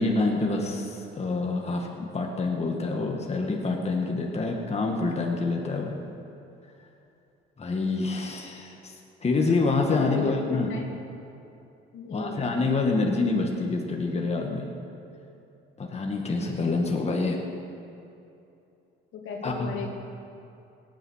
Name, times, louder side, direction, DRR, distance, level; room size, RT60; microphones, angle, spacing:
voice 1, 0.0-6.0 7.6-8.9 9.2-10.7 12.1-14.7 15.8-17.4 19.4-19.7, left 3 dB, 30° left, 0 dB, 2.0 m, -27 dB
voice 2, 9.9-10.9 11.9-12.6 19.1-19.9, left 5 dB, 70° left, 0 dB, 2.4 m, -36 dB
18.0 x 9.4 x 6.5 m, 2.8 s
cardioid pair, 85°, 21 cm